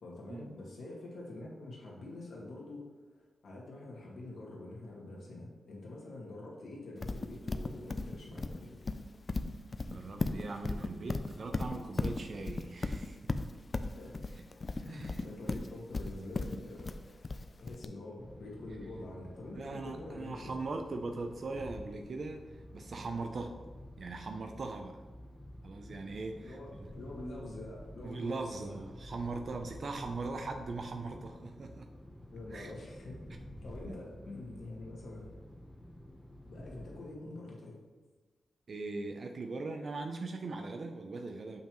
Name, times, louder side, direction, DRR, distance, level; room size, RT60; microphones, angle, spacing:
voice 1, 0.0-2.8 3.4-8.8 13.9-14.1 14.8-17.3 17.6-20.6 26.4-26.7 26.9-28.6 32.3-33.2 33.6-35.3 36.4-37.8, left 2 dB, 75° left, -3 dB, 1.8 m, -46 dB
Livestock farm animals working animals, 7.0-17.8, left 3 dB, 40° left, 0.4 m, -36 dB
voice 2, 9.8-13.2 14.3-14.4 14.9-15.6 19.6-22.4 22.7-23.6 24.0-25.0 25.6-26.6 28.0-31.9 32.5-32.7 33.9-34.0 38.7-41.6, right 3 dB, 55° right, 5 dB, 0.5 m, -40 dB
sound 1, 18.2-37.2, left 1 dB, 15° left, 0.8 m, -50 dB
6.8 x 5.5 x 3.0 m, 1.3 s
cardioid pair, 90°, 0 cm